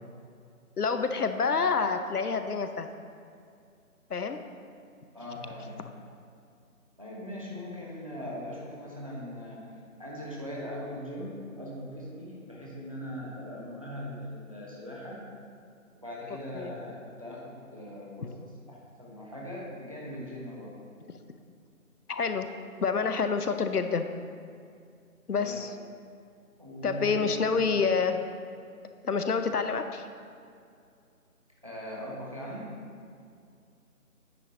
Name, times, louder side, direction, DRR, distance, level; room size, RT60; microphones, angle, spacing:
voice 1, 0.8-2.9 4.1-4.4 16.5-16.7 22.1-22.5 22.8-24.0 25.3-25.7 26.8-28.2 29.0-30.1, left 5 dB, 90° left, 8 dB, 0.8 m, -27 dB
voice 2, 5.1-5.8 7.0-9.7 10.0-15.2 15.9-18.3 18.7-20.8 25.3-25.6 26.6-27.7 31.6-32.7, equal, 25° right, -5 dB, 0.9 m, -40 dB
9.5 x 7.8 x 2.7 m, 2.4 s
figure-of-eight pair, 170°, 44 cm